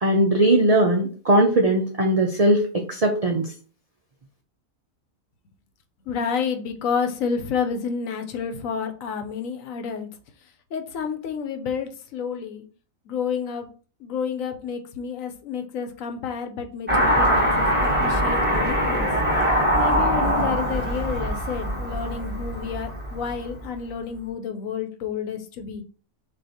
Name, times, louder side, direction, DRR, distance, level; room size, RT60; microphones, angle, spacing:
voice 1, 0.0-3.5, right 1 dB, 65° right, 1 dB, 0.3 m, -19 dB
voice 2, 6.1-10.1 10.7-12.6 13.1-13.7 14.0-19.1 19.8-25.8, left 6 dB, 75° left, 6 dB, 1.1 m, -30 dB
Car passing by / Accelerating revving vroom, 16.9-23.5, equal, 10° right, 1.1 m, -22 dB
6.2 x 2.5 x 2.8 m, 0.39 s
omnidirectional pair, 1.4 m